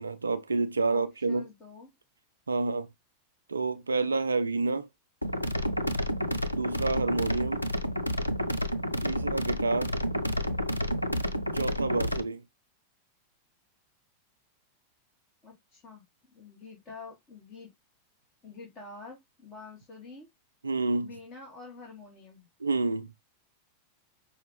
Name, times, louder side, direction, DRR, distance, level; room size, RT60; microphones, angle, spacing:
voice 1, 0.0-1.4 2.5-2.9 3.5-4.9 6.5-7.6 9.0-9.9 11.5-12.4 20.6-21.1 22.6-23.1, right 3 dB, 75° right, 0.4 m, -29 dB
voice 2, 0.9-1.9 15.4-17.7 18.4-20.3 21.0-22.5, left 4 dB, 25° left, 1.6 m, -47 dB
sound 1, 5.2-12.2, equal, 90° left, 0.5 m, -30 dB
5.5 x 2.4 x 3.2 m
figure-of-eight pair, 90°, 0 cm